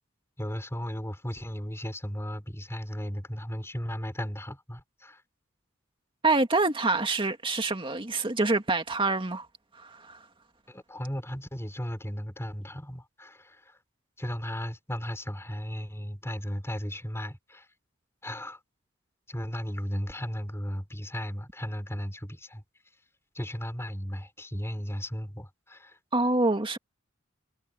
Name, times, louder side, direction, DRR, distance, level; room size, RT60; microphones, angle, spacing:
voice 1, 0.4-5.2 10.7-13.8 14.2-17.7 18.2-18.6 19.3-22.6 23.3-26.0, equal, 15° left, 4.6 m, -35 dB
voice 2, 6.2-9.5 9.8-10.2 26.1-26.8, right 3 dB, 25° right, 2.3 m, -26 dB
head